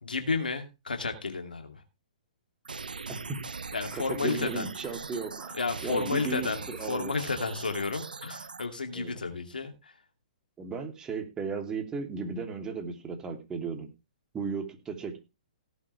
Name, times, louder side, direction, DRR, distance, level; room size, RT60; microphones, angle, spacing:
voice 1, 0.0-1.8 3.7-4.7 5.5-6.6 6.9-9.9, left 4 dB, 85° left, 5 dB, 2.6 m, -32 dB
sound 1, 2.6-8.7, right 4 dB, 90° right, 0.7 m, -40 dB
voice 2, 3.9-7.1 8.9-9.1 10.6-13.9 14.3-15.2, right 5 dB, 15° right, 4 dB, 3.0 m, -35 dB
17.5 x 8.1 x 3.4 m, 0.27 s
hypercardioid pair, 130°, 5 cm